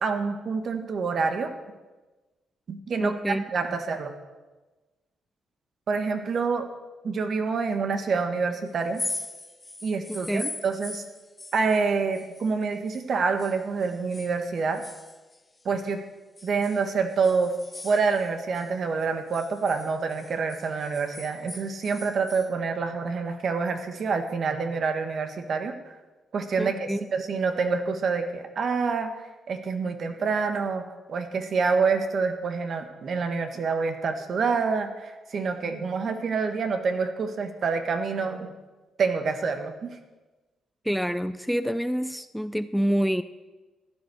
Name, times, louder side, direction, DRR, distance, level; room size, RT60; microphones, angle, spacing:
voice 1, 0.0-1.5 2.7-4.1 5.9-6.7 7.0-9.0 9.8-11.0 11.5-14.8 15.6-16.0 16.4-17.6 17.8-25.7 26.3-38.5 39.0-39.9, right 4 dB, 60° right, 7 dB, 1.7 m, -27 dB
voice 2, 3.0-3.4 10.1-10.5 26.6-27.0 40.8-43.2, equal, ahead, 13 dB, 0.5 m, -27 dB
sound 1, 8.8-13.1 13.4-15.9 16.4-18.7 19.0-22.5, left 2 dB, 20° left, 1.1 m, -40 dB
14.5 x 9.9 x 6.5 m, 1.2 s
cardioid pair, 75°, 0 cm